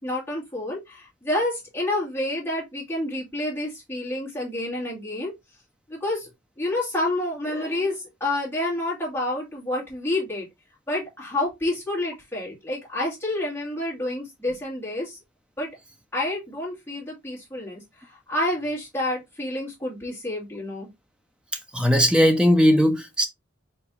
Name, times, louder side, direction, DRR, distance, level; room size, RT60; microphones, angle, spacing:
voice 1, 0.0-5.3 5.9-6.3 6.6-10.5 10.9-15.2 15.6-15.7 16.1-20.9, left 1 dB, 10° left, 2.3 m, -29 dB
voice 2, 21.7-23.3, equal, 5° right, 0.5 m, -18 dB
4.5 x 4.0 x 2.4 m
head